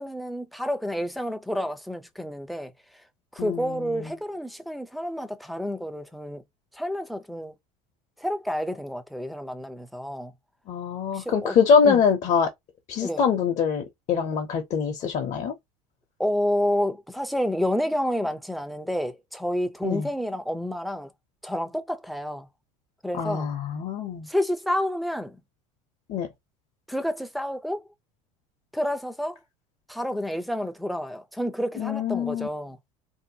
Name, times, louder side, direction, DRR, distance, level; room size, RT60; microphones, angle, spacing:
voice 1, 0.0-2.7 3.3-6.4 6.7-7.5 8.2-10.3 11.1-11.6 11.8-12.0 13.0-13.2 16.2-21.1 21.4-22.5 23.0-23.5 24.3-25.4 26.9-27.9 28.7-29.4 29.9-32.8, equal, ahead, 0.4 m, -29 dB
voice 2, 3.4-4.1 10.7-12.5 12.9-15.5 19.8-20.1 23.1-24.3 26.1-26.3 31.8-32.5, left 6 dB, 45° left, 0.7 m, -24 dB
2.7 x 2.2 x 2.7 m
supercardioid pair, 110°, 17 cm